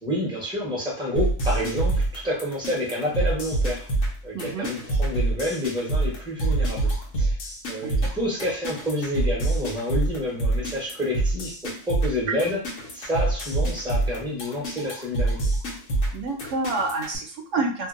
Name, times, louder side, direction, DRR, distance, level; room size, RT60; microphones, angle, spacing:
voice 1, 0.0-3.9 4.2-7.4 7.7-11.5 11.9-12.6 12.9-15.4, left 1 dB, 5° right, -5 dB, 0.9 m, -29 dB
sound 1, 1.2-17.2, right 2 dB, 85° left, 1.1 m, -26 dB
voice 2, 4.3-4.7 7.8-7.9 16.1-17.9, right 3 dB, 75° right, 2 dB, 0.9 m, -28 dB
2.7 x 2.6 x 2.5 m, 0.43 s
omnidirectional pair, 1.3 m